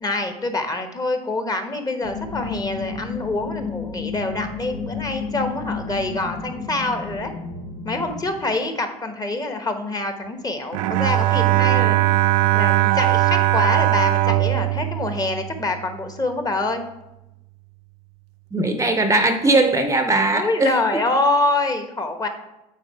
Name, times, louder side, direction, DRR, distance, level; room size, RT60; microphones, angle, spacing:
voice 1, 0.0-7.3 7.8-12.1 12.5-16.8 20.3-22.3, left 2 dB, 20° left, 7 dB, 1.1 m, -25 dB
sound 1, 2.0-8.3, left 5 dB, 75° left, 1.5 m, -32 dB
Bowed string instrument, 10.7-16.0, right 16 dB, 75° right, 0.4 m, -19 dB
voice 2, 18.5-20.7, right 2 dB, 15° right, 7 dB, 0.7 m, -19 dB
8.5 x 4.0 x 4.7 m, 0.91 s
hypercardioid pair, 70°, 18 cm